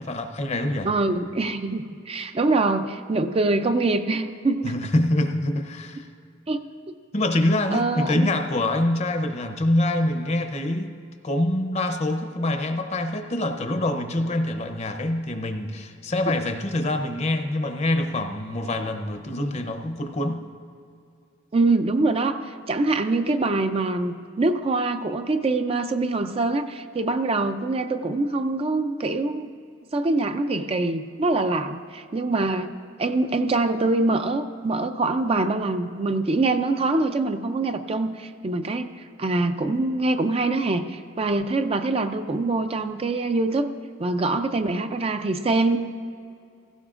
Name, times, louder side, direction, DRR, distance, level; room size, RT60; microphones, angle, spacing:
voice 1, 0.0-0.9 4.6-6.1 7.1-10.9 11.2-20.4, left 1 dB, 35° left, 7 dB, 0.7 m, -25 dB
voice 2, 0.8-4.9 6.5-6.9 7.7-8.3 21.5-29.5 29.9-32.7 33.0-38.9 39.2-43.7 44.0-45.8, right 2 dB, 30° right, 7 dB, 0.4 m, -24 dB
17.0 x 15.5 x 2.5 m, 2.4 s
head